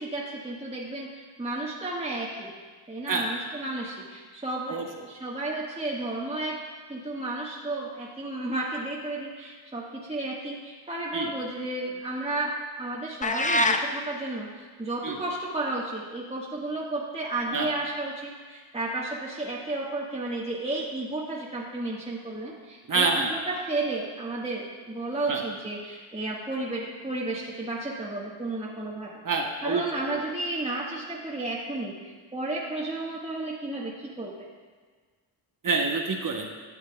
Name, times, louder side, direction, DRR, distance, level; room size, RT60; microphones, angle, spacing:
voice 1, 0.0-2.5 2.9-6.6 6.9-12.5 12.8-29.1 29.6-31.9 32.3-34.3, right 2 dB, 10° right, -5 dB, 1.4 m, -32 dB
sound 1, 13.2-13.9, left 2 dB, 15° left, 0.5 m, -23 dB
voice 2, 22.9-23.3 25.3-25.4 29.2-30.2 35.6-36.5, right 4 dB, 40° right, 2 dB, 1.0 m, -27 dB
12.0 x 7.3 x 2.3 m, 1.5 s
cardioid pair, 65°, 49 cm